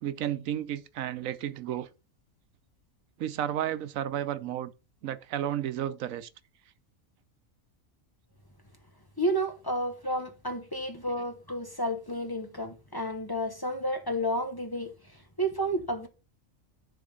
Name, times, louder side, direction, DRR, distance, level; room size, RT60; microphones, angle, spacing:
voice 1, 0.0-1.9 3.2-4.7 5.0-6.3, right 11 dB, 90° right, 1.1 m, -32 dB
voice 2, 9.2-14.9 15.4-16.1, equal, 20° left, 1.0 m, -31 dB
10.5 x 3.6 x 5.2 m
omnidirectional pair, 1.4 m